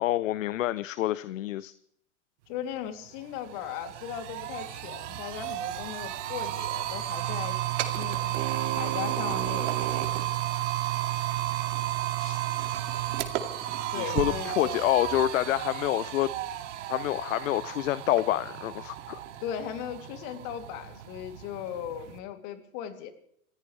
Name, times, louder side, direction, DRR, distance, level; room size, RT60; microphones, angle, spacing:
voice 1, 0.0-1.7 12.2-12.4 13.9-16.3 16.9-19.2, left 14 dB, 60° left, 18 dB, 0.7 m, -27 dB
voice 2, 2.5-7.6 8.0-8.4 8.7-9.9 13.9-14.8 19.4-23.1, left 9 dB, 45° left, 7 dB, 2.8 m, -38 dB
sound 1, 2.8-2.9 3.2-22.2, right 13 dB, 55° right, 2.3 m, -32 dB
27.0 x 15.5 x 3.3 m, 0.71 s
figure-of-eight pair, 100°, 44 cm